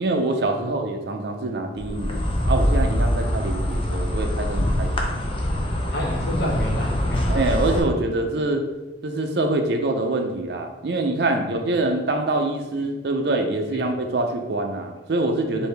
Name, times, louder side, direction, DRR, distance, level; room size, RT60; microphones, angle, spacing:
voice 1, 0.0-5.3 7.3-8.7 9.0-15.7, right 2 dB, 60° right, 5 dB, 0.5 m, -25 dB
Insect, 1.8-7.8, left 1 dB, 30° left, 0.5 m, -25 dB
sound 1, 2.0-4.8, equal, 35° right, 0.8 m, -27 dB
voice 2, 5.6-7.3 11.3-11.4 15.5-15.7, equal, 60° left, -3 dB, 1.1 m, -30 dB
4.7 x 2.6 x 3.2 m, 1.1 s
head